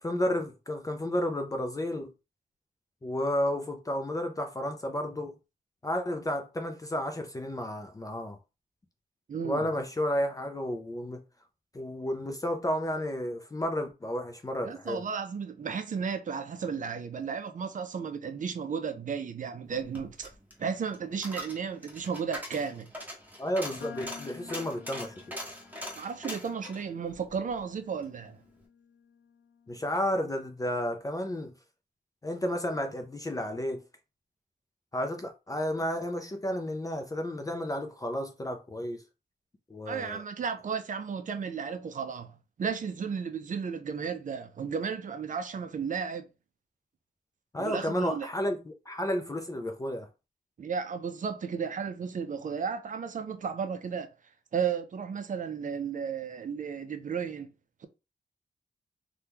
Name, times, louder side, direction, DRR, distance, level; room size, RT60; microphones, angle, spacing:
voice 1, 0.0-2.1 3.0-5.4 5.8-8.4 9.4-11.2 11.7-15.0 23.4-25.2 29.7-31.5 32.2-33.8 34.9-39.0 39.7-40.2 47.5-50.1, left 1 dB, 20° left, 0.4 m, -32 dB
voice 2, 9.3-9.7 14.6-20.3 20.6-22.9 26.0-28.4 39.9-46.3 47.6-48.3 50.6-54.1 54.5-57.5, right 6 dB, 50° right, 0.5 m, -34 dB
Coin (dropping), 19.7-28.1 28.5-28.6, equal, 10° right, 0.9 m, -42 dB
sound 1, 23.8-30.1, left 7 dB, 80° left, 0.6 m, -52 dB
2.9 x 2.2 x 3.4 m
wide cardioid pair, 130°, 17 cm